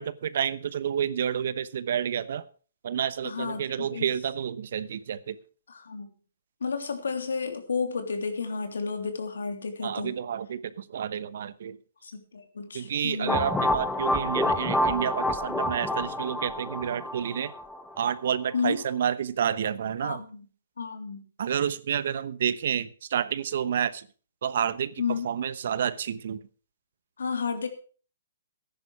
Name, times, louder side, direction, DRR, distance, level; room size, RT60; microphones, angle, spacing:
voice 1, 0.0-2.5 2.8-5.4 9.8-11.8 12.7-17.5 18.0-20.2 21.4-24.1 24.4-26.4, right 8 dB, 60° right, 16 dB, 1.0 m, -29 dB
voice 2, 3.2-4.1 5.7-6.1 6.6-10.2 12.0-13.5 18.5-18.8 20.0-20.4 20.8-21.2 25.0-25.3 27.2-27.7, left 5 dB, 80° left, 6 dB, 3.2 m, -32 dB
sound 1, 13.3-18.0, left 1 dB, 5° left, 1.2 m, -28 dB
14.5 x 10.5 x 4.8 m, 0.38 s
hypercardioid pair, 145°, 0 cm